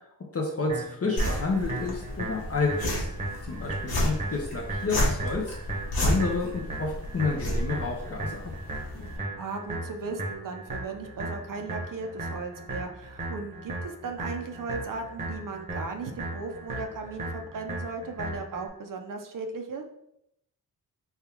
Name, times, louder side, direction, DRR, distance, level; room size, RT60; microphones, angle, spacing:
voice 1, 0.3-3.1 3.5-5.5 6.0-8.5, left 3 dB, 40° left, -1 dB, 0.6 m, -30 dB
sound 1, 0.7-18.7, right 2 dB, 15° right, 0.9 m, -37 dB
sound 2, 1.2-9.2, equal, 65° left, 1.1 m, -31 dB
voice 2, 9.1-19.8, right 4 dB, 55° right, 5 dB, 0.5 m, -36 dB
3.5 x 2.3 x 4.3 m, 0.77 s
wide cardioid pair, 150°, 39 cm